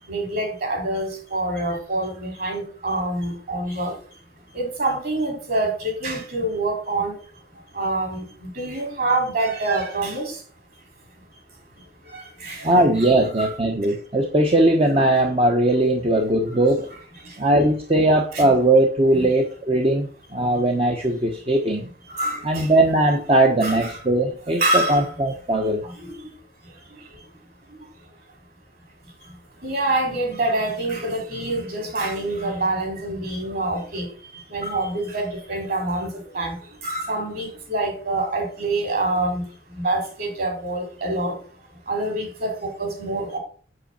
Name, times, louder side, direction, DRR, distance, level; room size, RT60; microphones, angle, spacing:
voice 1, 0.1-4.2 4.5-7.2 7.5-10.4 11.8-13.1 13.4-13.5 16.5-16.6 17.2-17.5 18.3-18.5 19.1-19.3 22.1-22.7 23.6-23.9 24.6-25.2 25.9-26.4 26.6-27.2 27.7-28.1 29.0-41.4 41.9-43.4, right 2 dB, 55° right, 2 dB, 5.5 m, -27 dB
voice 2, 12.6-16.9 17.4-21.9 22.4-25.9, right 1 dB, 30° right, 2 dB, 1.2 m, -19 dB
8.3 x 8.0 x 4.4 m, 0.41 s
head